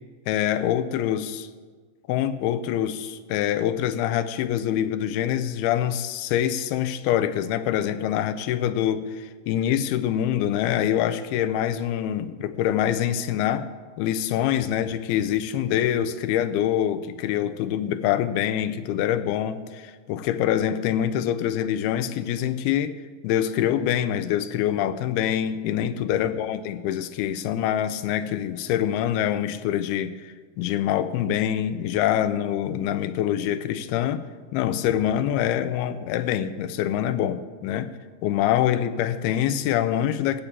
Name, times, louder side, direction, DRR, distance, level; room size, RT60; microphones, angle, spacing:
voice 1, 0.3-1.5 2.1-13.7 14.0-23.0 23.2-34.3 34.5-37.9 38.2-40.4, left 10 dB, 85° left, 2.6 m, -25 dB
16.0 x 8.2 x 7.4 m
omnidirectional pair, 4.4 m